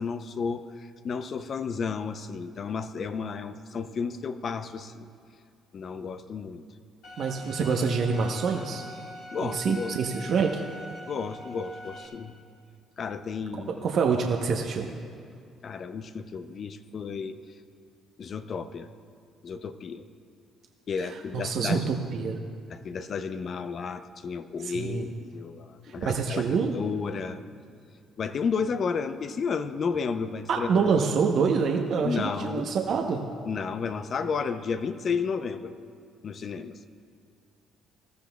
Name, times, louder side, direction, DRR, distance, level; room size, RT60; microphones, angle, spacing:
voice 1, 0.0-5.1 5.7-6.6 9.3-10.0 11.1-12.3 13.0-13.9 15.6-17.4 18.2-18.9 19.4-20.0 20.9-21.9 22.7-27.4 28.2-31.0 32.0-32.7 33.4-35.8 36.2-36.8, left 5 dB, 50° left, 10 dB, 0.6 m, -32 dB
Bowed string instrument, 7.0-12.1, equal, 75° left, 2.9 m, -43 dB
voice 2, 7.2-8.8 9.4-10.6 13.8-14.9 21.0-22.4 24.6-25.1 25.9-26.7 30.5-33.2, right 5 dB, 65° right, 2 dB, 0.9 m, -26 dB
20.0 x 13.5 x 2.3 m, 2.4 s
supercardioid pair, 60°, 0 cm